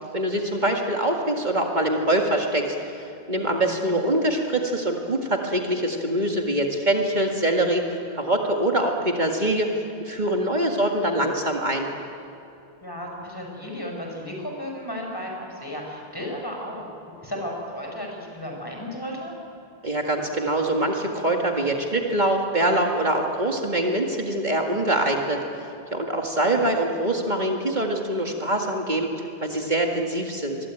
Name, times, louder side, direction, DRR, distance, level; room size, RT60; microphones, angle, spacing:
voice 1, 0.1-9.7 10.0-11.9 19.8-29.1 29.4-30.6, right 1 dB, 45° right, 1 dB, 2.1 m, -24 dB
voice 2, 12.8-16.9 17.2-19.3 26.3-26.6, equal, 20° left, 0 dB, 6.0 m, -34 dB
26.0 x 22.5 x 9.1 m, 2.8 s
omnidirectional pair, 1.0 m